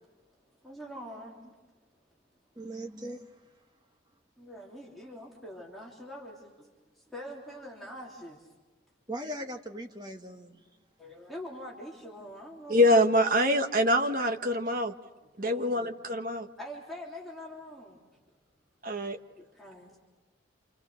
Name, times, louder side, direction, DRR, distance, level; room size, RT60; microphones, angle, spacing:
voice 1, 0.6-1.5 4.4-8.5 11.0-13.0 15.2-15.9 16.6-18.0 19.4-20.0, equal, ahead, 3.3 m, -44 dB
voice 2, 2.6-3.3 9.1-10.6, right 1 dB, 20° right, 1.5 m, -39 dB
voice 3, 12.7-14.9 15.4-16.5 18.8-19.2, equal, 45° right, 1.3 m, -25 dB
29.0 x 27.5 x 6.4 m
head